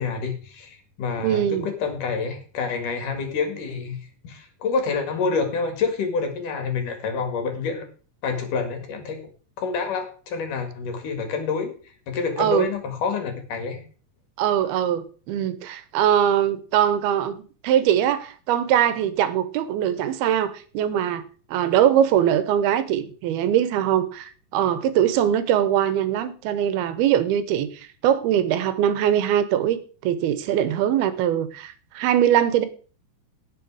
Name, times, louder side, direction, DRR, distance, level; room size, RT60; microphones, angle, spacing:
voice 1, 0.0-7.9 8.2-9.2 9.6-11.7 12.1-13.8, left 5 dB, 60° left, 3.4 m, -27 dB
voice 2, 1.2-1.7 12.4-12.7 14.4-17.4 17.6-21.2 21.5-32.7, right 10 dB, 85° right, 2.9 m, -22 dB
17.5 x 6.8 x 4.8 m
omnidirectional pair, 4.3 m